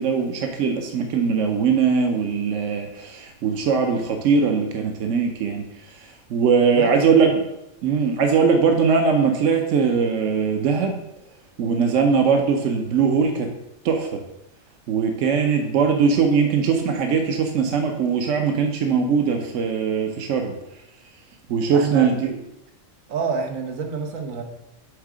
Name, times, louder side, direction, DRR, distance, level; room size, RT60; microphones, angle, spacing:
voice 1, 0.0-7.3 7.8-11.0 11.6-13.5 13.8-14.2 14.9-20.5 21.5-22.4, right 5 dB, 70° right, 4 dB, 1.1 m, -21 dB
voice 2, 6.6-7.2 21.7-22.2 23.1-24.4, right 5 dB, 85° right, 4 dB, 1.3 m, -28 dB
8.3 x 3.7 x 4.8 m, 0.87 s
omnidirectional pair, 1.4 m